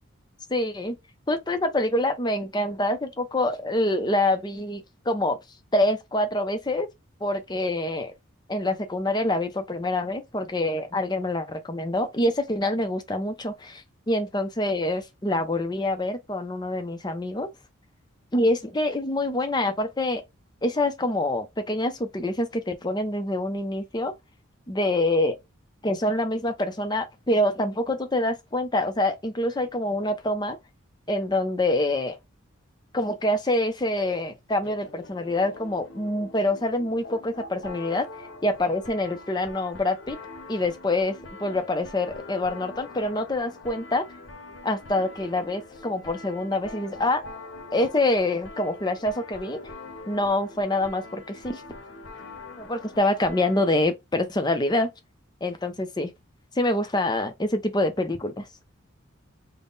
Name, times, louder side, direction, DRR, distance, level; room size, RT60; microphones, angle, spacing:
voice 1, 0.5-0.9 1.3-5.4 5.7-6.9 7.2-8.1 8.5-17.5 18.3-20.2 20.6-24.1 24.7-25.4 25.8-30.6 31.1-32.2 32.9-40.2 40.5-44.0 44.6-47.2 47.7-49.6 50.1-51.6 52.6-54.9 55.4-56.1 56.5-58.5, left 1 dB, 20° left, 0.5 m, -26 dB
sound 1, 34.6-53.8, left 2 dB, 60° left, 0.8 m, -43 dB
3.6 x 2.1 x 3.9 m
head